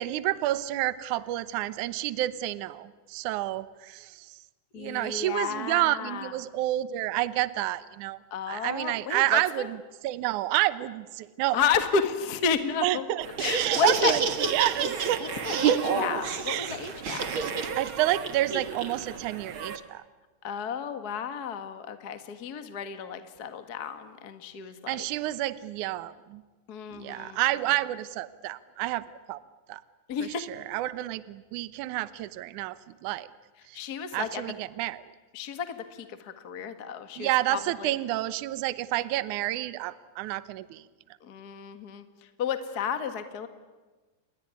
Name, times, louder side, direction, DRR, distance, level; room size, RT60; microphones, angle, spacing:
voice 1, 0.0-4.4 4.8-8.2 8.5-11.6 12.8-15.2 15.5-15.8 16.5-16.8 17.8-20.0 24.9-26.4 26.9-29.4 29.7-29.8 30.2-32.8 33.0-33.3 33.7-33.9 34.1-35.0 37.2-40.8, right 15 dB, 70° right, 15 dB, 2.1 m, -29 dB
voice 2, 4.7-6.3 8.3-9.7 11.5-13.0 13.4-14.1 15.4-17.3 20.4-25.0 26.7-27.4 30.1-30.4 33.7-34.4 35.3-37.9 41.2-42.1 42.4-43.5, left 6 dB, 45° left, 9 dB, 1.3 m, -32 dB
Laughter, 13.2-19.8, right 6 dB, 45° right, 1.9 m, -30 dB
29.5 x 21.0 x 9.6 m, 1.3 s
omnidirectional pair, 4.4 m